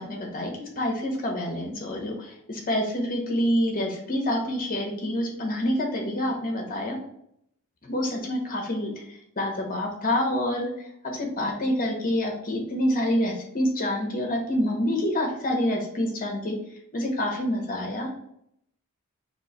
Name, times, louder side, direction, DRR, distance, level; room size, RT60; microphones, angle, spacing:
voice 1, 0.0-7.0 7.8-10.7 11.1-16.5 16.9-18.1, left 1 dB, 40° left, 2 dB, 0.9 m, -27 dB
3.1 x 3.0 x 4.1 m, 0.74 s
head